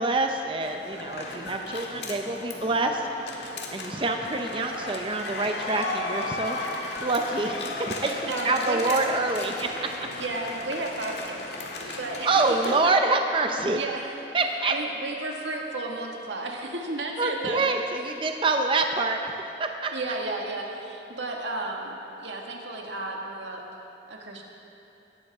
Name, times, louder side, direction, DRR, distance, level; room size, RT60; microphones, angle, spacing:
voice 1, 0.0-3.0 3.7-6.6 7.0-9.7 11.8-12.0 12.2-13.8 14.3-14.7 17.2-19.2 19.6-19.9, right 3 dB, 30° right, 4 dB, 0.6 m, -26 dB
sound 1, 0.6-12.8, left 2 dB, 70° left, 1.6 m, -35 dB
voice 2, 8.3-9.0 10.2-12.9 13.7-14.2 14.7-17.7 19.9-23.6 24.1-24.4, right 2 dB, 85° right, 0 dB, 1.8 m, -33 dB
17.5 x 14.0 x 3.6 m, 2.8 s
head